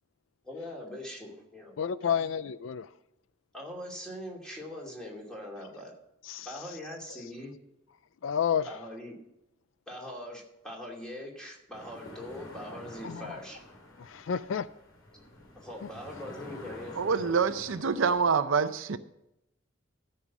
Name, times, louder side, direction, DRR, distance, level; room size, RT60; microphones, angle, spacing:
voice 1, 0.4-1.7 2.0-2.3 3.5-5.9 6.4-7.5 8.6-9.1 9.9-13.6 15.5-17.3, left 1 dB, 5° left, 2.5 m, -42 dB
voice 2, 1.8-2.9 6.3-6.5 8.2-8.7 13.0-13.4 14.0-14.7, left 7 dB, 70° left, 0.4 m, -30 dB
sound 1, 11.7-18.3, left 1 dB, 90° left, 2.5 m, -48 dB
voice 3, 16.9-19.0, right 5 dB, 75° right, 0.6 m, -26 dB
13.0 x 5.6 x 6.0 m
head